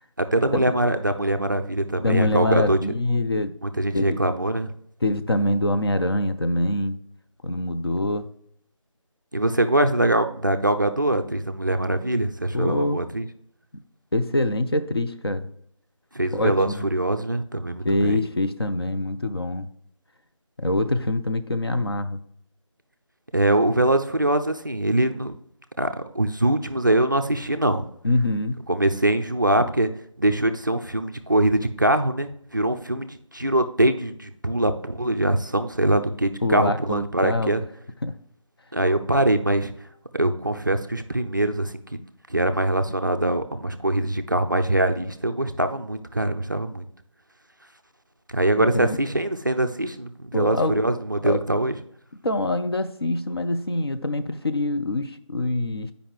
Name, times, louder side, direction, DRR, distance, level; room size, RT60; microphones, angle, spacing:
voice 1, 0.2-2.8 3.6-4.7 9.3-13.3 16.1-18.2 23.3-25.3 25.8-25.9 26.1-27.8 28.7-29.9 30.2-37.6 38.7-39.7 40.1-42.0 42.3-46.9 48.3-51.7, right 1 dB, 35° right, 8 dB, 0.4 m, -23 dB
voice 2, 2.0-3.6 3.9-4.2 5.0-7.0 7.4-8.3 12.5-13.0 14.1-15.5 16.3-16.9 17.8-19.7 20.6-22.2 28.0-28.6 36.4-37.6 38.0-38.1 48.6-49.0 50.3-50.8 51.2-51.4 52.2-55.9, left 2 dB, 50° left, 8 dB, 0.5 m, -24 dB
8.5 x 5.0 x 3.0 m, 0.66 s
figure-of-eight pair, 165°, 17 cm